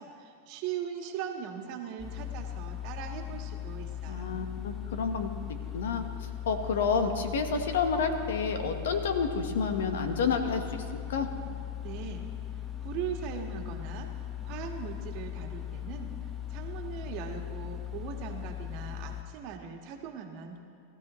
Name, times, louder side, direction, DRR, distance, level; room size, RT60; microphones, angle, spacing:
voice 1, 0.0-4.5 11.8-12.3 12.8-14.1 14.4-16.1 16.5-20.6, right 8 dB, 50° right, 3 dB, 1.6 m, -40 dB
sound 1, 2.0-19.2, left 11 dB, 10° left, 1.1 m, -39 dB
voice 2, 4.1-5.3 5.7-11.3, left 5 dB, 85° left, 6 dB, 1.3 m, -30 dB
19.5 x 13.5 x 3.1 m, 2.6 s
supercardioid pair, 130°, 0 cm